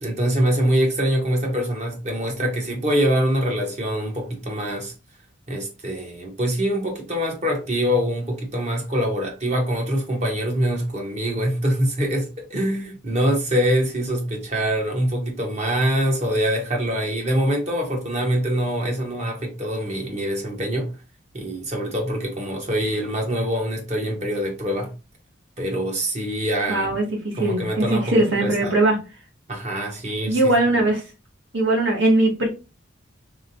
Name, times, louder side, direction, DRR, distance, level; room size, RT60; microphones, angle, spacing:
voice 1, 0.0-4.9 5.5-21.0 21.3-24.9 25.6-26.9 27.4-28.1 28.4-28.9 29.5-30.5, equal, 35° right, 1.1 m, -24 dB
voice 2, 26.7-29.0 30.3-31.0 31.5-32.5, right 2 dB, 65° right, 1.6 m, -20 dB
3.6 x 3.4 x 2.7 m
head